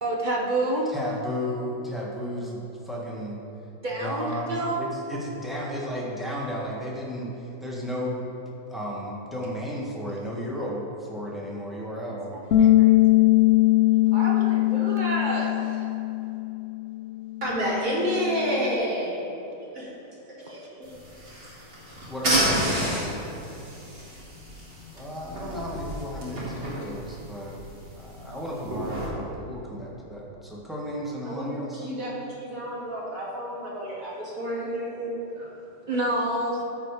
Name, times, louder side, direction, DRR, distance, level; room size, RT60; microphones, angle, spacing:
voice 1, 0.0-0.9 3.8-4.9 12.6-13.3 14.1-15.9 20.4-20.7 22.2-22.7 35.9-36.6, right 2 dB, 40° right, -2 dB, 0.8 m, -29 dB
voice 2, 0.9-3.4 4.0-8.3 8.7-12.3 22.1-23.2 24.9-31.9, equal, ahead, -5 dB, 1.5 m, -34 dB
Bass guitar, 12.5-18.7, left 16 dB, 60° left, 0.6 m, -21 dB
voice 3, 17.4-19.3 19.7-19.9 20.3-20.4 20.8-20.9 31.3-35.5, equal, 55° right, -7 dB, 2.8 m, -30 dB
sound 1, 20.8-29.1, equal, 85° right, 2.8 m, -31 dB
13.5 x 4.7 x 4.9 m, 3.0 s
omnidirectional pair, 1.7 m